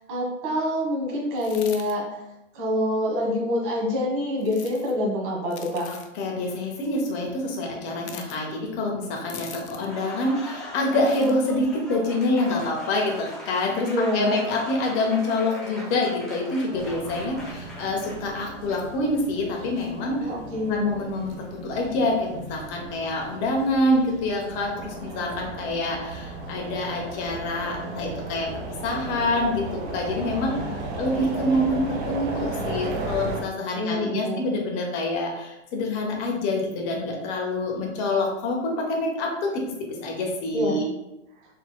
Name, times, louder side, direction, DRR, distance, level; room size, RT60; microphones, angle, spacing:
voice 1, 0.1-2.0 2.5-5.9 13.8-14.4 20.2-20.9 33.8-34.5 40.5-40.8, left 1 dB, 45° right, -2 dB, 1.5 m, -26 dB
sound 1, 1.4-1.9 4.4-4.9 5.5-6.1 8.0-8.4 9.3-9.9 10.9-11.3, left 8 dB, 65° left, 0.6 m, -42 dB
voice 2, 5.9-13.9 14.1-20.3 20.7-28.5 28.8-39.5 40.0-40.9, left 2 dB, 30° left, 0 dB, 0.9 m, -26 dB
Applause, 9.7-19.0, equal, ahead, 0.5 m, -41 dB
sound 2, 16.7-33.4, right 2 dB, 60° right, 0.9 m, -35 dB
4.1 x 3.7 x 2.2 m, 0.93 s
hypercardioid pair, 130°, 37 cm